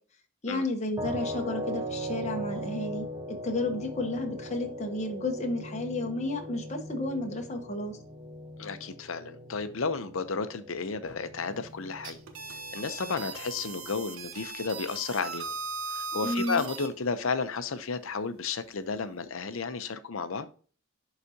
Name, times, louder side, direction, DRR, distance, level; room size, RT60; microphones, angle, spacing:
voice 1, 0.4-8.0 16.2-16.6, left 2 dB, 35° left, 1.0 m, -32 dB
sound 1, 1.0-14.0, equal, 15° right, 1.1 m, -40 dB
voice 2, 8.6-12.2 12.7-15.5 15.9-20.5, left 4 dB, 75° left, 0.7 m, -32 dB
sound 2, 11.9-16.9, right 4 dB, 80° right, 1.1 m, -38 dB
11.0 x 4.1 x 2.8 m
head